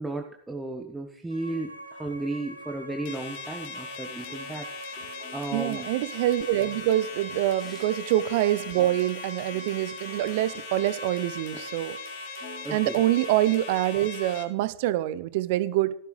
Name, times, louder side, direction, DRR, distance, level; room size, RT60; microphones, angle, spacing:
voice 1, 0.0-5.9 7.6-7.8 11.5-11.6 12.6-13.0, right 2 dB, 5° right, 1.1 m, -35 dB
sound 1, 1.3-14.3, right 1 dB, 85° right, 1.3 m, -42 dB
sound 2, 3.0-14.4, left 8 dB, 50° left, 2.2 m, -42 dB
Plucked string instrument, 4.2-9.1 9.5-11.2 11.6-11.7 12.4-13.5, left 3 dB, 30° left, 3.7 m, -52 dB
voice 2, 5.5-12.0 12.7-16.0, right 14 dB, 50° right, 0.7 m, -25 dB
14.5 x 13.0 x 3.2 m
figure-of-eight pair, 90°, 0 cm